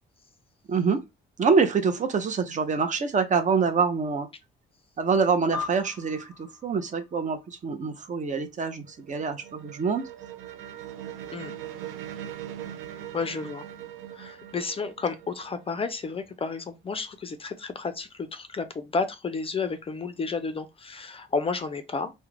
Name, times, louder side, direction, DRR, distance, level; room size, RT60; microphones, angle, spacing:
voice 1, 0.7-1.0 1.4-4.3 5.0-10.0, right 5 dB, 40° right, 0.5 m, -25 dB
sound 1, 5.5-8.3, left 4 dB, 5° right, 0.8 m, -40 dB
sound 2, 8.5-16.2, right 11 dB, 90° right, 0.4 m, -41 dB
voice 2, 13.1-13.7 14.1-22.1, left 4 dB, 30° left, 0.4 m, -31 dB
2.3 x 2.1 x 3.1 m
cardioid pair, 90°, 20 cm